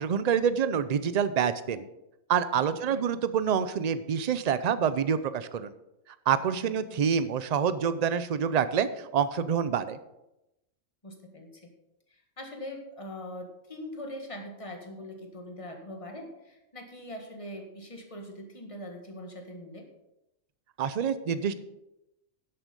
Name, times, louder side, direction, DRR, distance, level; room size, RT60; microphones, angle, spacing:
voice 1, 0.0-1.9 2.3-5.7 6.3-10.0 20.8-21.6, right 7 dB, 50° right, 13 dB, 0.5 m, -27 dB
voice 2, 2.7-3.0 6.6-7.0 11.0-11.7 12.1-19.9, left 1 dB, 25° left, 3 dB, 1.7 m, -42 dB
11.0 x 7.8 x 5.3 m, 0.91 s
omnidirectional pair, 1.4 m